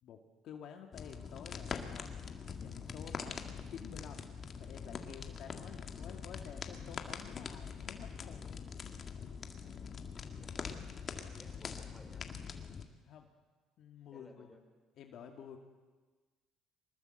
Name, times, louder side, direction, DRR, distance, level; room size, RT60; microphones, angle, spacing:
voice 1, 0.0-2.1 2.6-8.6 9.6-10.0 12.8-13.3 13.8-14.5 15.0-15.6, left 8 dB, 60° left, 4 dB, 2.2 m, -51 dB
sound 1, 0.9-12.8, left 6 dB, 40° left, 2.1 m, -44 dB
voice 2, 10.4-10.9 11.2-12.2 14.1-14.6, left 1 dB, 10° left, 2 dB, 4.9 m, -59 dB
24.5 x 20.5 x 7.9 m, 1.3 s
cardioid pair, 110°, 0 cm